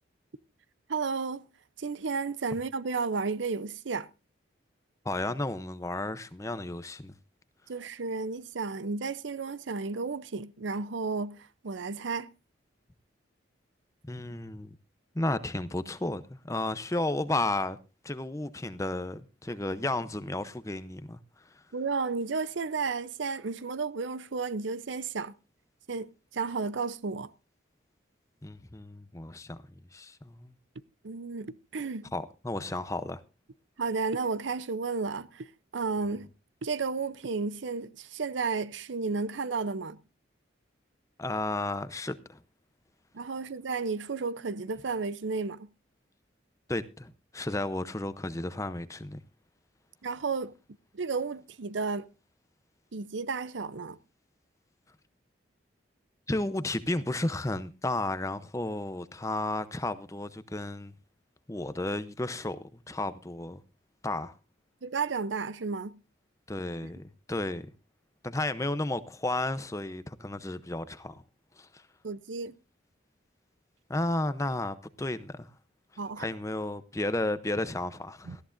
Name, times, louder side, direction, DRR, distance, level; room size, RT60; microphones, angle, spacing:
voice 1, 0.9-1.5 1.8-4.1 7.7-12.3 21.7-25.3 25.9-27.3 31.0-32.1 33.8-35.5 35.7-36.3 36.6-40.0 43.1-45.7 50.0-50.5 50.9-52.0 52.9-54.0 64.8-66.0 72.0-72.5 76.0-76.3 78.3-78.4, right 4 dB, 70° right, 0.6 m, -32 dB
voice 2, 5.0-7.1 14.1-14.7 15.1-17.8 18.0-21.2 28.4-29.6 29.9-30.5 32.1-33.2 41.2-42.4 46.7-49.2 56.3-60.9 61.5-63.6 64.0-64.3 66.5-67.6 68.2-71.2 71.6-71.8 73.9-75.5 76.2-78.4, left 2 dB, 15° left, 0.6 m, -33 dB
18.5 x 13.5 x 2.5 m
head